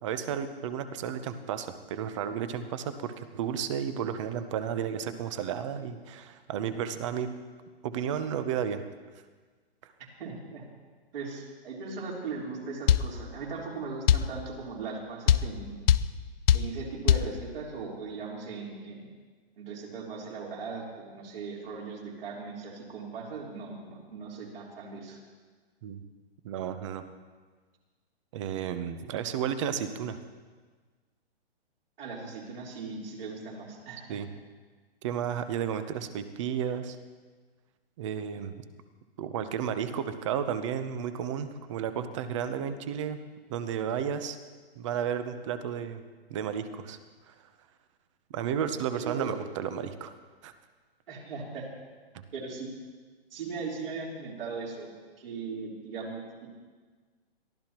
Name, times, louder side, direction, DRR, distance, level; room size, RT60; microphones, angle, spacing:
voice 1, 0.0-7.3 7.8-8.8 25.8-26.0 26.4-27.0 28.3-30.2 34.1-34.3 35.0-37.0 38.0-38.6 39.2-43.2 43.5-44.4 44.8-46.0 46.3-47.0 47.3-47.4 48.3-50.1 50.4-50.5, right 8 dB, 30° right, 11 dB, 0.7 m, -32 dB
voice 2, 10.2-10.6 11.1-15.7 16.5-19.0 19.6-25.2 32.0-34.2 48.9-49.3 51.1-51.7 52.3-52.7 53.3-54.9 55.2-56.5, right 4 dB, 60° right, -3 dB, 3.9 m, -38 dB
sound 1, 12.9-13.1 14.1-14.3 15.3-15.5 15.9-16.1 16.5-16.7 17.1-17.3, left 10 dB, 65° left, 0.6 m, -20 dB
22.5 x 14.0 x 3.0 m, 1.4 s
hypercardioid pair, 155°, 32 cm